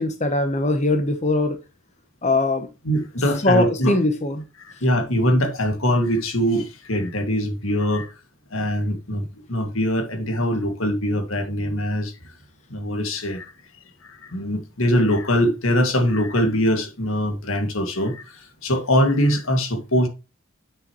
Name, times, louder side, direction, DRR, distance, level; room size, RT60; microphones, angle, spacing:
voice 1, 0.0-1.6 2.2-2.7 3.4-4.4, left 2 dB, 35° left, 1.0 m, -21 dB
voice 2, 2.8-3.9 4.8-8.1 8.5-12.1 12.7-13.5 14.3-18.2 18.6-20.1, equal, 80° left, 2.2 m, -22 dB
9.2 x 6.4 x 3.1 m
head